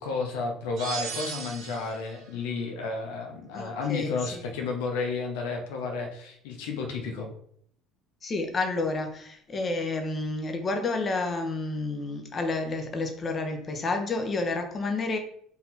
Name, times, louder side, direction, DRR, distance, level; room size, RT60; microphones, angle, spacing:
voice 1, 0.0-7.3, left 4 dB, 90° left, 3 dB, 0.7 m, -32 dB
sound 1, 0.8-2.1, right 7 dB, 60° right, 1.7 m, -36 dB
voice 2, 3.5-4.2 8.2-15.2, left 3 dB, 30° left, 5 dB, 0.8 m, -30 dB
4.1 x 2.8 x 4.0 m, 0.65 s
supercardioid pair, 100°, 0 cm